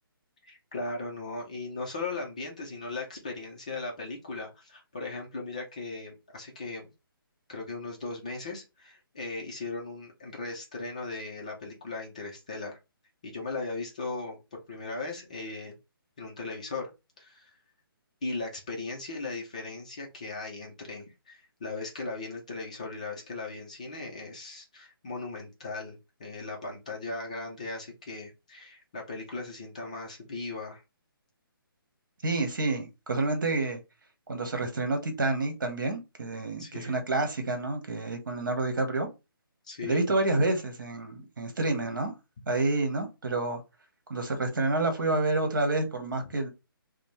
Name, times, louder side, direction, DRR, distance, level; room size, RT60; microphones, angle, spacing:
voice 1, 0.5-6.9 7.5-12.8 13.2-15.8 16.2-16.9 17.2-17.5 18.2-30.8 36.6-37.0 39.6-40.0, left 3 dB, 20° left, 0 dB, 0.4 m, -38 dB
voice 2, 32.2-33.8 34.3-39.1 39.8-42.1 42.5-43.6 44.1-46.5, right 2 dB, 60° right, 5 dB, 1.2 m, -28 dB
5.2 x 2.0 x 3.1 m, 0.26 s
hypercardioid pair, 175°, 12 cm